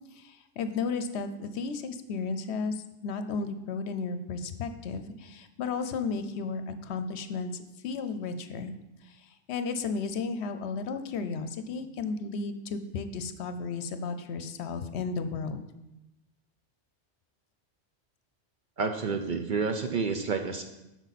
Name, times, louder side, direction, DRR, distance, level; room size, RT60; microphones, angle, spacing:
voice 1, 0.1-8.8 9.0-15.6, left 4 dB, 70° left, 9 dB, 0.8 m, -34 dB
voice 2, 18.8-20.6, right 5 dB, 55° right, 5 dB, 0.6 m, -29 dB
8.2 x 6.2 x 4.1 m, 0.95 s
omnidirectional pair, 1.2 m